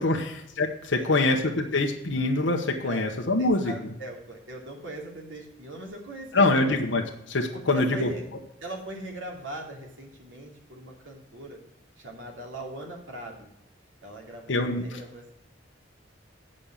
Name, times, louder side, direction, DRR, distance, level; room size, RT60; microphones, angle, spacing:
voice 1, 0.0-3.9 6.3-7.0 7.3-8.1 14.5-14.8, left 2 dB, 70° left, 2 dB, 0.9 m, -24 dB
voice 2, 1.0-1.3 2.8-3.1 3.4-6.8 7.7-8.2 8.6-11.6 12.0-13.5 14.0-15.3, right 1 dB, 85° right, 0 dB, 2.7 m, -40 dB
8.6 x 5.2 x 7.2 m, 0.82 s
head